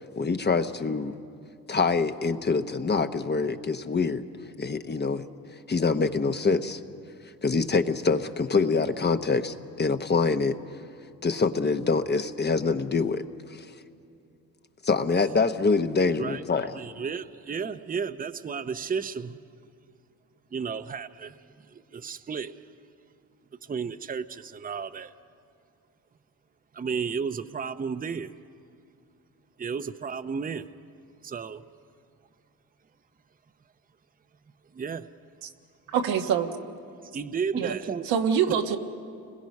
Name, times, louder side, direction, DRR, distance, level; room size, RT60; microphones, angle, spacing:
voice 1, 0.2-1.1 1.7-4.2 4.6-5.3 5.7-6.8 7.4-10.6 11.2-13.2 13.5-13.7 14.8-16.8, left 4 dB, 30° left, 8 dB, 1.0 m, -25 dB
voice 2, 16.7-19.7 20.5-22.6 23.6-25.1 26.7-28.4 29.6-30.7 31.2-31.6 34.7-35.1 37.1-38.1 38.5-38.6, right 6 dB, 25° right, 11 dB, 0.7 m, -33 dB
voice 3, 35.9-36.5 37.6-37.7 38.1-38.8, right 7 dB, 85° right, 4 dB, 1.4 m, -24 dB
30.0 x 21.5 x 5.4 m, 2.5 s
cardioid pair, 80°, 34 cm